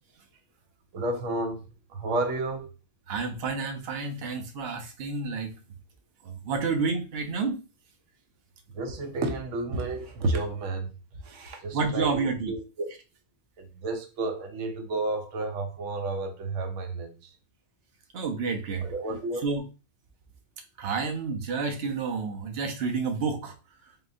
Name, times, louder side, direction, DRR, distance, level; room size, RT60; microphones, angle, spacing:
voice 1, 0.9-2.7 8.7-10.9 11.2-12.9 13.6-17.3 18.8-19.4, right 2 dB, 90° right, 1.0 m, -31 dB
voice 2, 3.1-5.5 6.3-7.6 11.7-12.5 18.1-18.9 19.4-19.6 20.8-23.5, right 4 dB, 60° right, 1.0 m, -29 dB
3.8 x 3.7 x 2.5 m
omnidirectional pair, 1.2 m